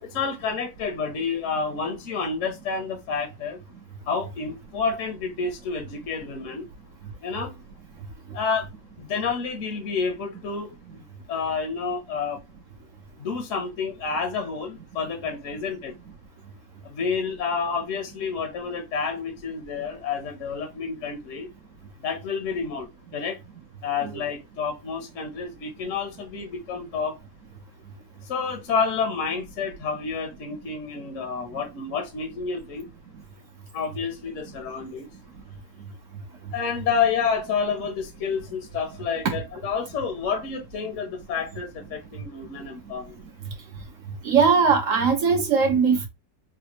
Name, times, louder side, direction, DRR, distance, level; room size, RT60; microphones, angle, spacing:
voice 1, 0.0-3.6 4.1-6.7 7.2-7.5 8.3-8.7 9.0-11.0 11.3-12.4 13.2-15.9 16.8-21.5 22.0-22.9 23.1-23.4 23.8-27.2 28.3-32.8 33.7-35.1 36.5-43.1, left 5 dB, 55° left, 0.9 m, -29 dB
voice 2, 44.2-46.1, right 5 dB, 60° right, 0.9 m, -19 dB
4.2 x 2.3 x 2.9 m
omnidirectional pair, 2.0 m